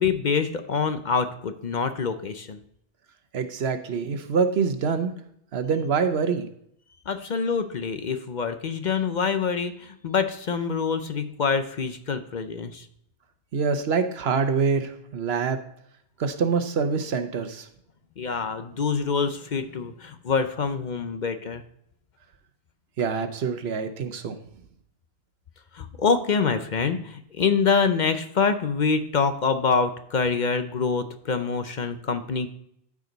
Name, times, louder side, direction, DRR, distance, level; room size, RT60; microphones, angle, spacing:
voice 1, 0.0-2.6 7.1-12.9 18.2-21.6 25.7-32.5, left 5 dB, 50° left, 9 dB, 0.7 m, -25 dB
voice 2, 3.3-5.1 5.5-6.5 13.5-15.6 16.2-17.7 23.0-24.3, right 5 dB, 75° right, 9 dB, 1.1 m, -25 dB
13.0 x 4.9 x 3.9 m, 0.73 s
omnidirectional pair, 1.1 m